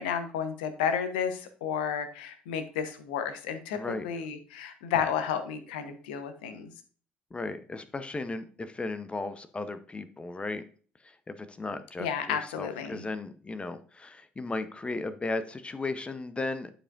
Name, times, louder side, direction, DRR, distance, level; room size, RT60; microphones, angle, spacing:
voice 1, 0.0-6.7 12.0-13.0, left 7 dB, 70° left, 8 dB, 1.0 m, -32 dB
voice 2, 3.7-4.1 7.3-10.6 11.0-16.7, left 3 dB, 20° left, 11 dB, 0.7 m, -36 dB
11.0 x 4.9 x 2.5 m, 0.42 s
figure-of-eight pair, 55°, 5 cm